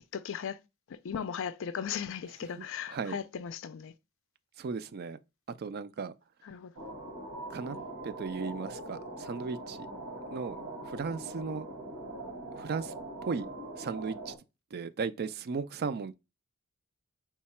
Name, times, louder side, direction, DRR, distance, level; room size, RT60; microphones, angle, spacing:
voice 1, 0.1-0.6 0.9-3.9 6.4-6.7 7.7-7.8, left 7 dB, 60° left, 0.4 m, -37 dB
voice 2, 2.6-3.2 4.6-5.2 5.6-6.1 7.5-7.8 8.0-9.8 10.3-10.6 10.8-11.7 12.5-12.9 13.2-13.5 13.8-14.4 14.7-16.2, right 5 dB, 45° right, 0.4 m, -36 dB
sound 1, 6.8-14.4, right 2 dB, 80° right, 1.4 m, -42 dB
4.6 x 2.2 x 4.2 m
head